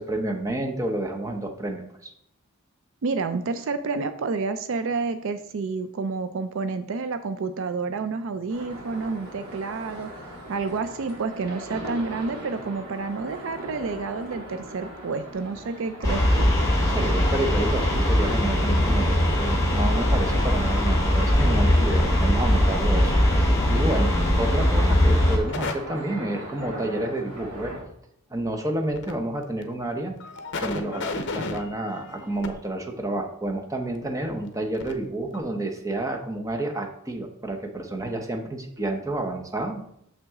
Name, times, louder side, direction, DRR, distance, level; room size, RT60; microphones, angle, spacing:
voice 1, 0.0-2.1 16.9-27.7 28.3-30.1 30.6-39.9, right 1 dB, 15° right, 3 dB, 0.8 m, -30 dB
voice 2, 3.0-16.5, right 4 dB, 60° right, 11 dB, 0.4 m, -29 dB
sound 1, 8.5-27.8, equal, 85° right, 2.5 m, -41 dB
sound 2, 16.0-25.4, left 1 dB, 15° left, 2.4 m, -21 dB
sound 3, 25.5-25.7 28.8-29.1 29.6-29.7 30.2-32.5 34.3-34.4 34.7-34.9 35.3-35.4, left 4 dB, 55° left, 0.7 m, -33 dB
6.7 x 6.0 x 3.6 m, 0.72 s
head